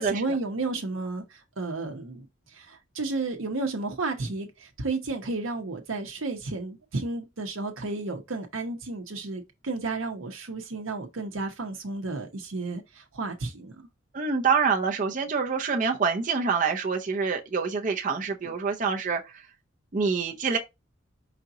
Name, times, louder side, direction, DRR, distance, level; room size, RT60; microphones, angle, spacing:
voice 1, 0.0-2.3 2.5-13.7, right 3 dB, 80° right, 0.9 m, -32 dB
voice 2, 14.1-19.3 19.9-20.6, right 5 dB, 40° right, 0.6 m, -26 dB
5.1 x 2.8 x 3.8 m
head